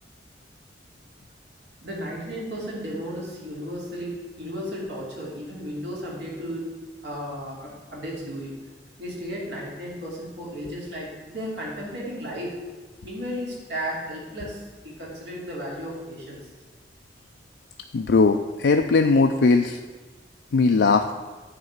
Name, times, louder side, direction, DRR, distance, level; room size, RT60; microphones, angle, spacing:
voice 1, 1.8-6.7 7.0-8.6 9.0-12.5 13.0-16.5, equal, 75° right, -4 dB, 2.8 m, -34 dB
voice 2, 17.9-19.8 20.5-21.1, left 4 dB, 75° left, 5 dB, 0.4 m, -19 dB
9.4 x 4.1 x 7.2 m, 1.3 s
head